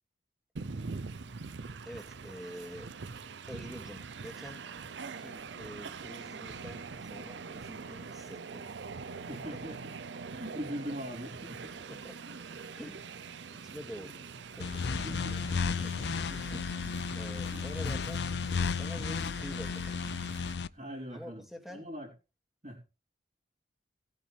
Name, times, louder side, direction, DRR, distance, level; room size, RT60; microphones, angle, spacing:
Train, 0.6-20.6, right 4 dB, 80° right, 0.6 m, -44 dB
voice 1, 1.9-2.9 3.5-4.6 5.2-8.7 9.2-9.3 11.9-12.3 12.7-13.3 13.6-14.2 14.5-18.2 18.5-20.0 21.1-21.9, equal, ahead, 2.3 m, -47 dB
voice 2, 9.3-10.0 10.3-12.4 13.6-14.3 15.0-15.4 15.8-16.5 17.5-17.9 20.7-21.4 21.7-22.1 22.6-22.8, equal, 45° right, 4.1 m, -43 dB
sound 1, 14.6-20.7, left 5 dB, 65° left, 0.5 m, -33 dB
18.0 x 8.6 x 3.4 m
head